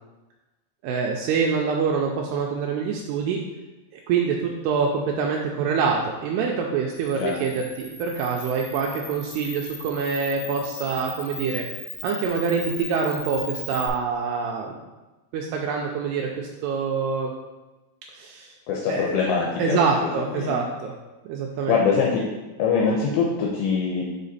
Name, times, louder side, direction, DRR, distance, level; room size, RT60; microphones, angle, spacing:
voice 1, 0.8-3.4 3.9-11.6 12.0-14.8 15.3-17.3 18.1-18.5 18.9-19.1 19.6-20.9 21.3-21.7, right 5 dB, 80° right, 0 dB, 2.5 m, -25 dB
Camera, 6.9-13.9, left 3 dB, 50° left, 2.4 m, -38 dB
voice 2, 18.7-20.6 21.7-22.3 22.6-24.0, left 5 dB, 80° left, -2 dB, 2.5 m, -23 dB
5.7 x 5.2 x 4.0 m, 1.1 s
omnidirectional pair, 4.8 m